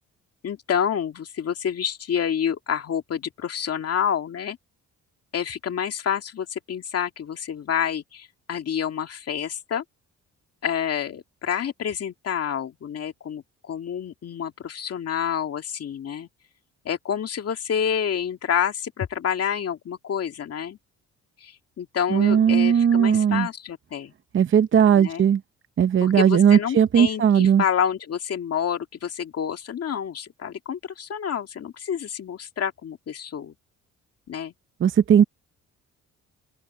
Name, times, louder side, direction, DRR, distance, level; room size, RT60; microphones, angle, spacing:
voice 1, 0.4-4.6 5.3-9.8 10.6-16.3 16.8-20.8 21.4-24.1 24.9-25.2 26.0-33.5 34.3-34.5, left 8 dB, 55° left, 2.1 m, -28 dB
voice 2, 22.1-23.5 24.3-25.4 25.8-27.6 34.8-35.3, right 8 dB, 40° right, 0.7 m, -18 dB
open air
cardioid pair, 90°, 30 cm